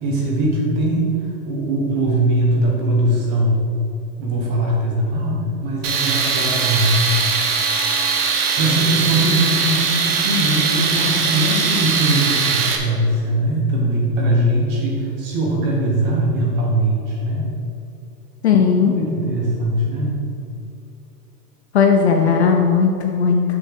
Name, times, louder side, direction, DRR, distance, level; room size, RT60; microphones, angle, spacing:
voice 1, 0.0-1.2 1.4-3.6 4.2-6.9 8.6-17.5 18.8-20.3 22.2-22.5, right 1 dB, 20° right, -2 dB, 1.2 m, -21 dB
Tools, 5.8-12.8, right 5 dB, 35° right, 0.8 m, -20 dB
voice 2, 18.4-19.0 21.7-23.4, left 6 dB, 45° left, 3 dB, 0.5 m, -16 dB
6.4 x 5.9 x 6.5 m, 2.6 s
supercardioid pair, 175°, 49 cm